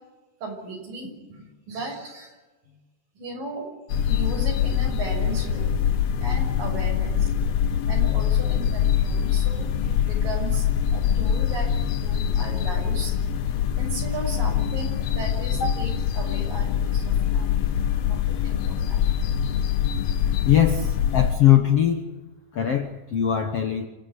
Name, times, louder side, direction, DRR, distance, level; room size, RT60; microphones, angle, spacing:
voice 1, 0.4-2.4 3.2-3.7 4.1-5.7 6.2-7.3 7.9-10.7 10.9-13.1 13.8-19.0, right 2 dB, 65° right, 2 dB, 7.8 m, -36 dB
sound 1, 3.9-21.4, left 9 dB, 75° left, 1.5 m, -24 dB
voice 2, 20.5-22.0 22.5-23.9, left 10 dB, 60° left, 6 dB, 1.7 m, -21 dB
28.0 x 16.5 x 8.3 m, 1.2 s
omnidirectional pair, 4.2 m